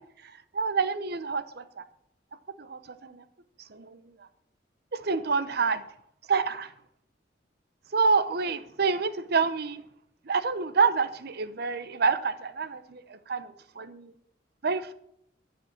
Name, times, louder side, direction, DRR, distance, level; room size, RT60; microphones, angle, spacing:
voice 1, 0.2-1.8 2.6-3.2 3.7-4.3 4.9-5.8 6.3-6.7 7.9-9.8 10.2-14.1 14.6-14.9, right 5 dB, 60° right, 12 dB, 0.8 m, -28 dB
12.5 x 5.3 x 8.6 m, 0.72 s
head